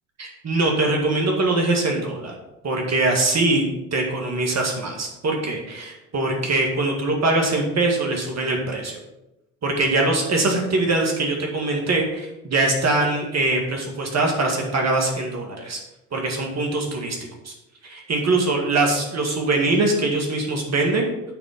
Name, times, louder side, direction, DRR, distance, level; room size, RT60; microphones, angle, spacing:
voice 1, 0.2-2.3 2.6-3.7 3.9-9.0 9.6-15.8 16.1-17.2 17.4-17.5 17.8-21.1, right 2 dB, 40° right, 1 dB, 2.0 m, -22 dB
8.9 x 4.1 x 5.9 m, 0.94 s
hypercardioid pair, 65°, 41 cm